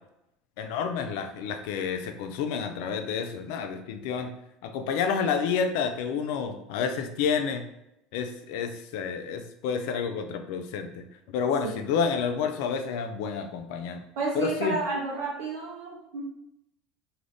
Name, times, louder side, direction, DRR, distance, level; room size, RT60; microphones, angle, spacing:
voice 1, 0.6-4.3 4.6-7.6 8.1-11.0 11.3-14.0 14.3-14.8, left 6 dB, 70° left, 7 dB, 0.3 m, -29 dB
voice 2, 14.2-16.2, right 3 dB, 70° right, -5 dB, 0.6 m, -31 dB
2.5 x 2.4 x 3.3 m, 0.83 s
hypercardioid pair, 80°, 0 cm